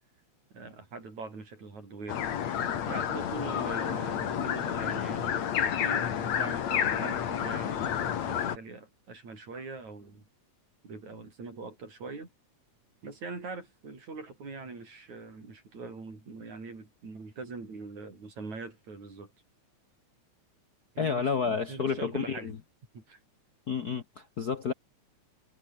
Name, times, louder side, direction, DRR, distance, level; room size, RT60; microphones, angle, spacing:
voice 1, 0.5-2.2 2.9-10.3 10.8-12.3 13.0-19.3 21.0-22.5 22.9-23.2, right 4 dB, 75° right, 7.9 m, -42 dB
sound 1, 2.1-8.6, left 9 dB, 65° left, 3.1 m, -30 dB
voice 2, 21.0-22.5 23.7-24.7, left 6 dB, 50° left, 1.2 m, -30 dB
omnidirectional pair, 3.3 m